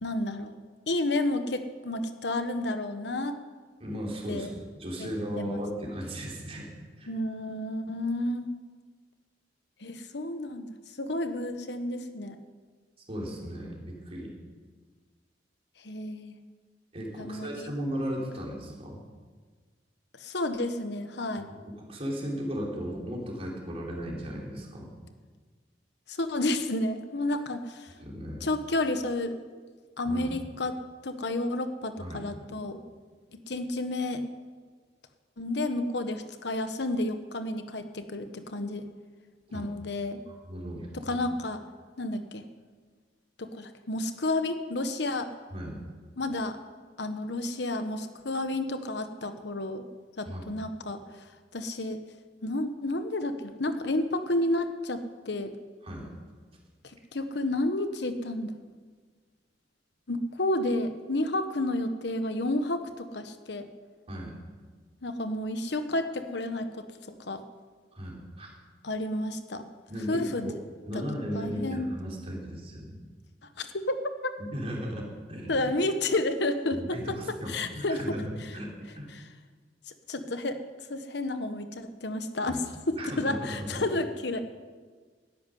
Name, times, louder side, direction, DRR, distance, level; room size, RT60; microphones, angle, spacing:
voice 1, 0.0-0.5 0.9-3.4 4.3-4.5 5.0-5.1 5.4-5.6 7.1-8.5 9.8-12.4 15.8-16.4 17.2-17.7 20.2-21.5 26.1-27.9 28.4-29.3 30.0-32.8 33.3-34.2 35.4-38.9 39.5-40.2 40.9-41.6 42.0-42.4 43.4-45.3 46.2-46.6 47.0-49.8 50.2-51.0 51.5-52.0 52.4-55.5 57.1-58.6 60.1-63.7 65.0-67.4 68.8-69.7 70.1-70.5 70.9-71.0 71.3-71.8 73.6-74.3 75.5-78.0 79.1-79.2 79.9-80.6 80.9-84.4, left 2 dB, 65° left, 9 dB, 1.1 m, -31 dB
voice 2, 3.8-6.7 7.0-7.1 13.1-14.3 16.9-19.0 21.4-24.9 28.0-28.5 30.0-30.3 32.0-32.2 39.5-39.6 40.3-41.2 45.5-45.8 50.3-50.4 55.8-56.1 64.1-64.3 67.9-68.5 69.9-70.6 70.8-73.0 74.4-75.7 76.7-79.1 82.5-82.6 83.0-83.8, equal, 35° right, -2 dB, 4.1 m, -36 dB
13.0 x 11.0 x 9.9 m, 1.5 s
head